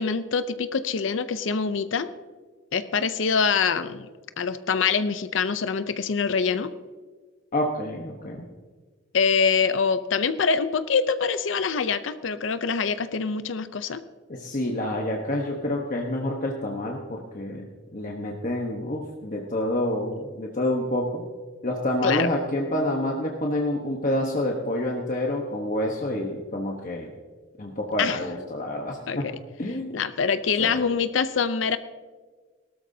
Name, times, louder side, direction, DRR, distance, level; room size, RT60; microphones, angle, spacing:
voice 1, 0.0-2.1 2.7-4.1 4.4-6.7 9.1-14.0 22.0-22.3 28.0-28.2 29.1-29.3 29.9-31.8, left 5 dB, 70° left, 12 dB, 0.6 m, -24 dB
voice 2, 7.5-8.4 14.3-17.7 17.9-21.2 21.6-27.1 27.6-29.3 29.6-29.9 30.6-30.8, left 1 dB, 45° left, 0 dB, 1.1 m, -28 dB
18.5 x 13.0 x 2.8 m, 1.4 s
head